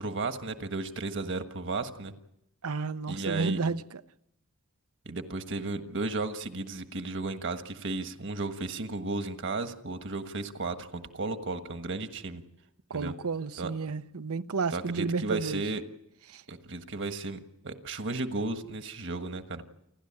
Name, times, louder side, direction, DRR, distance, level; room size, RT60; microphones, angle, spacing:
voice 1, 0.0-2.1 3.1-3.6 5.0-12.4 12.9-13.1 13.6-13.7 14.7-15.8 16.5-19.6, right 3 dB, 60° right, 1.5 m, -34 dB
voice 2, 2.6-3.8 12.9-15.6 16.3-16.4, right 4 dB, 85° right, 0.7 m, -31 dB
29.0 x 11.5 x 8.8 m
head